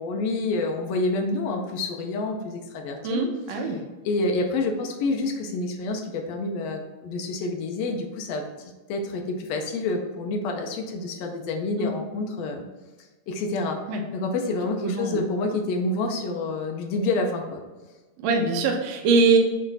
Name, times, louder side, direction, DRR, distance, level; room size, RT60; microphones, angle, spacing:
voice 1, 0.0-3.2 3.5-3.7 4.0-12.6 13.0-13.8 14.1-17.6, left 2 dB, 85° left, 3 dB, 1.4 m, -28 dB
voice 2, 3.0-3.8 11.8-11.9 13.9-14.0 14.8-15.2 18.2-19.4, right 4 dB, 70° right, 2 dB, 1.7 m, -22 dB
7.3 x 3.3 x 4.0 m, 1.2 s
omnidirectional pair, 3.8 m